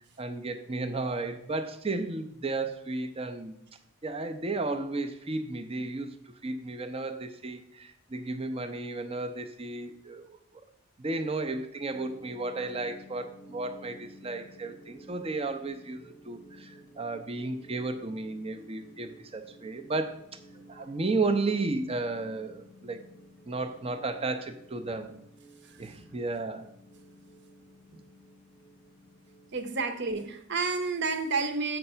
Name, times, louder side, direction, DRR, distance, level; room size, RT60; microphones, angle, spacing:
voice 1, 0.2-3.6 4.0-10.4 11.0-20.2 20.7-23.0 23.5-25.2 25.8-26.7, right 3 dB, 30° right, 6 dB, 0.6 m, -33 dB
sound 1, 11.9-29.6, equal, 15° left, 0.7 m, -53 dB
voice 2, 20.5-20.9 24.9-25.0 25.6-26.0 29.5-31.8, right 4 dB, 55° right, 7 dB, 1.0 m, -31 dB
7.9 x 5.2 x 5.6 m, 0.73 s
head